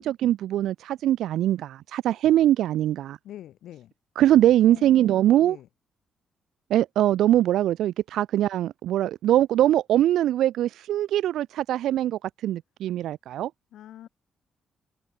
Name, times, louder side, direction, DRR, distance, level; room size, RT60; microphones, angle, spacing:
voice 1, 0.0-3.2 4.2-5.6 6.7-13.5, right 12 dB, 85° right, 0.8 m, -22 dB
voice 2, 3.2-3.9 4.7-5.7 13.7-14.1, left 12 dB, 85° left, 2.8 m, -44 dB
cardioid pair, 140°, 0 cm